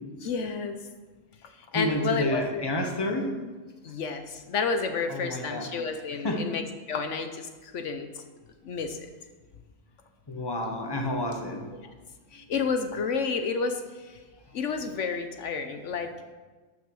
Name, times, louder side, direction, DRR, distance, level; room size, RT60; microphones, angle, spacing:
voice 1, 0.2-0.7 1.7-2.7 3.8-6.6 6.9-8.2 8.6-9.1 11.8-11.9 12.3-14.1 14.5-16.2, left 5 dB, 75° left, 7 dB, 1.1 m, -30 dB
voice 2, 1.7-3.3 5.1-6.4 10.3-11.7, left 1 dB, 20° left, 3 dB, 1.2 m, -30 dB
12.5 x 6.1 x 6.2 m, 1.3 s
omnidirectional pair, 1.3 m